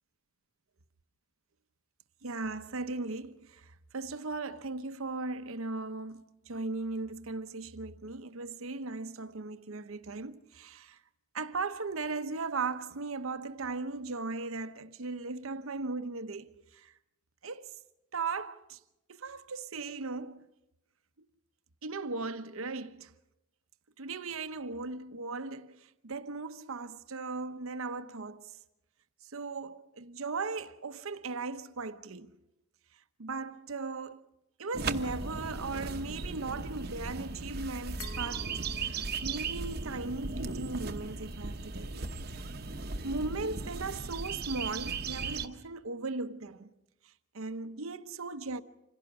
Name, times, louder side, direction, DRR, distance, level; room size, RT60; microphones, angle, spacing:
voice 1, 2.2-11.0 11.3-16.9 17.4-17.7 18.1-18.8 19.1-20.4 21.8-23.1 24.0-28.6 29.3-32.3 33.2-34.2 34.6-38.5 38.8-42.1 43.0-46.7 47.3-48.6, right 3 dB, 75° right, 0.9 m, -37 dB
sound 1, 34.7-45.5, right 4 dB, 45° right, 1.0 m, -37 dB
Glass, 38.0-40.8, left 5 dB, 85° left, 2.5 m, -52 dB
26.5 x 17.0 x 6.0 m
head